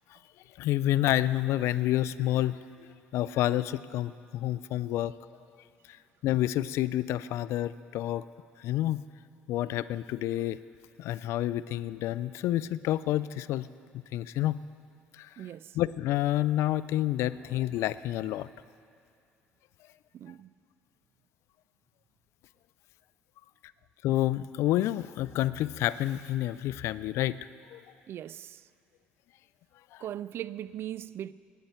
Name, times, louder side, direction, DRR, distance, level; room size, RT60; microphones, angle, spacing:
voice 1, 0.6-5.1 5.9-6.0 6.2-8.2 8.6-9.0 9.5-10.6 11.0-13.7 14.1-14.6 15.1-15.5 15.7-18.5 24.0-27.8 29.9-30.0, left 14 dB, 70° left, 0.4 m, -29 dB
voice 2, 15.4-15.7 20.1-20.5 28.1-28.6 30.0-31.3, right 11 dB, 55° right, 0.3 m, -39 dB
20.0 x 9.4 x 4.4 m
supercardioid pair, 70°, 5 cm